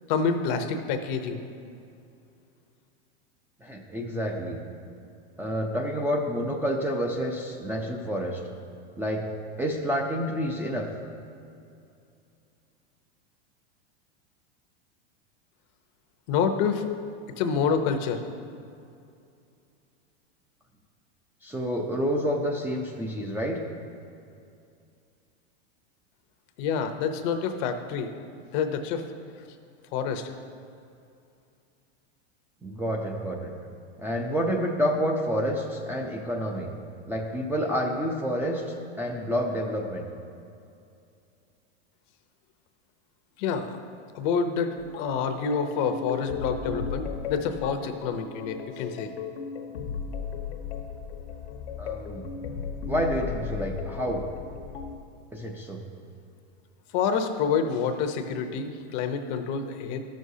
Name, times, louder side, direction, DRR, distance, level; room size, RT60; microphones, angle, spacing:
voice 1, 0.1-1.4 16.3-16.8 17.4-18.2 26.6-28.1 28.5-29.0 29.9-30.3 43.4-43.8 44.1-49.1 56.9-60.0, left 6 dB, 50° left, 7 dB, 0.7 m, -27 dB
voice 2, 3.6-4.6 5.4-8.4 9.0-9.3 9.6-10.9 21.4-23.6 32.6-33.5 34.0-36.7 37.1-38.6 39.0-40.1 51.8-52.3 52.9-54.2 55.3-55.8, equal, 5° right, 0 dB, 0.5 m, -29 dB
sound 1, 44.8-55.0, left 6 dB, 80° left, 1.0 m, -36 dB
13.0 x 6.3 x 2.7 m, 2.5 s
supercardioid pair, 135°, 31 cm